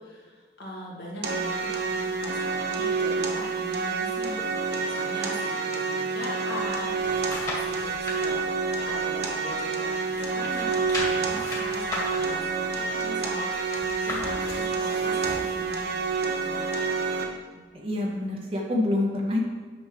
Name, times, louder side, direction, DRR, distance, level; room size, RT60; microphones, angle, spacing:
voice 1, 0.0-16.9, left 1 dB, 75° left, -4 dB, 2.1 m, -40 dB
sound 1, 1.2-17.2, right 4 dB, 65° right, 1.0 m, -28 dB
sound 2, 6.6-8.2 8.7-9.8 10.1-15.6 16.1-16.2, left 1 dB, 20° left, 1.7 m, -36 dB
voice 2, 17.5-19.4, left 2 dB, 30° right, -1 dB, 0.8 m, -27 dB
9.5 x 6.2 x 3.3 m, 1.5 s
head